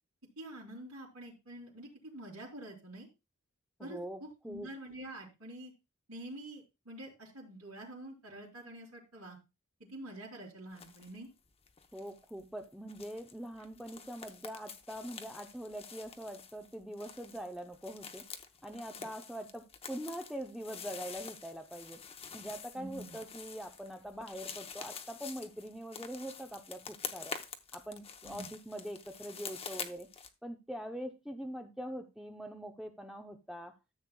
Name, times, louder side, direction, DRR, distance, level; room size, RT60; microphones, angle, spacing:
voice 1, 0.4-3.1 3.8-5.7 6.1-9.4 9.9-11.3 19.0-19.1 22.7-23.2 28.2-28.5, right 1 dB, 75° right, -4 dB, 3.1 m, -47 dB
voice 2, 3.8-4.7 11.9-18.3 18.6-22.0 22.3-27.4 27.7-30.1 30.4-33.7, equal, ahead, 4 dB, 0.6 m, -43 dB
sound 1, 10.7-11.2 11.4-30.3, left 6 dB, 25° left, 0.8 m, -47 dB
13.5 x 7.7 x 2.3 m, 0.25 s
head